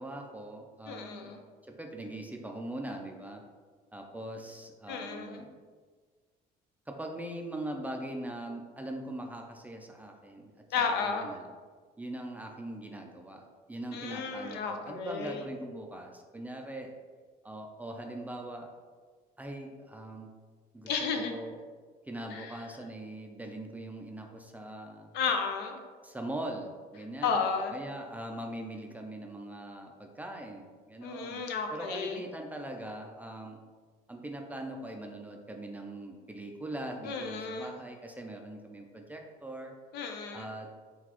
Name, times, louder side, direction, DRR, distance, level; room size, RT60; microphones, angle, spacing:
voice 1, 0.0-1.3 1.6-3.4 3.9-5.6 6.9-10.5 10.8-11.5 12.0-13.4 13.7-16.9 17.4-18.7 19.4-20.3 20.7-21.6 22.0-25.1 26.0-27.5 27.7-31.4 31.7-33.6 34.1-39.7 40.3-40.7, right 1 dB, 10° right, 2 dB, 0.3 m, -41 dB
voice 2, 0.9-1.4 4.9-5.5 10.7-11.3 13.9-15.5 20.9-21.3 22.3-22.5 25.1-25.8 27.2-27.7 31.0-32.2 37.0-37.8 39.9-40.5, left 5 dB, 80° left, 4 dB, 0.5 m, -33 dB
3.9 x 2.3 x 3.0 m, 1.5 s
cardioid pair, 110°, 17 cm